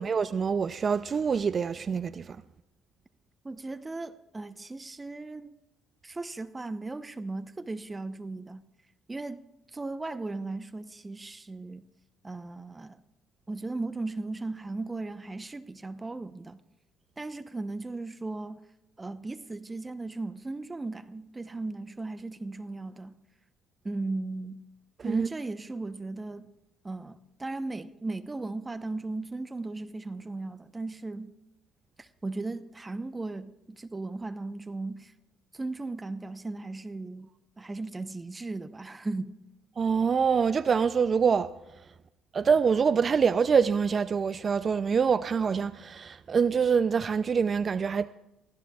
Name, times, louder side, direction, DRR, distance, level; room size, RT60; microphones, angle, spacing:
voice 1, 0.0-2.4 25.0-25.3 39.8-41.5 42.3-48.1, right 6 dB, 45° right, 0.4 m, -25 dB
voice 2, 3.4-5.6 6.0-8.6 9.1-9.4 9.7-11.8 12.2-13.0 13.5-16.6 17.2-18.6 19.0-23.2 23.8-24.6 25.0-26.5 26.8-31.3 32.0-35.1 35.5-37.3 37.6-39.3, right 2 dB, 20° right, 0.8 m, -36 dB
24.5 x 15.5 x 2.4 m
supercardioid pair, 65°, 0 cm